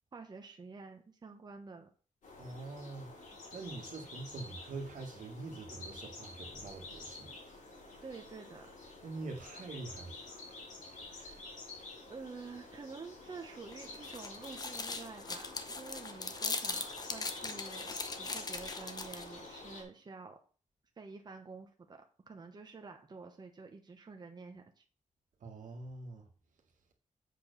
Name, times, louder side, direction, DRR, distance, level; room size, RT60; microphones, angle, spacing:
voice 1, 0.1-1.9 8.0-8.7 11.1-11.4 12.1-20.4 21.0-24.8, right 4 dB, 30° right, 1.0 m, -49 dB
sound 1, 2.2-19.8, left 3 dB, 85° left, 3.8 m, -49 dB
voice 2, 2.4-3.1 3.5-7.3 9.0-10.8 25.4-26.3, right 3 dB, 85° right, 1.8 m, -45 dB
sound 2, 13.7-19.4, left 3 dB, 30° left, 0.7 m, -40 dB
7.6 x 4.5 x 6.8 m
wide cardioid pair, 155°, 13 cm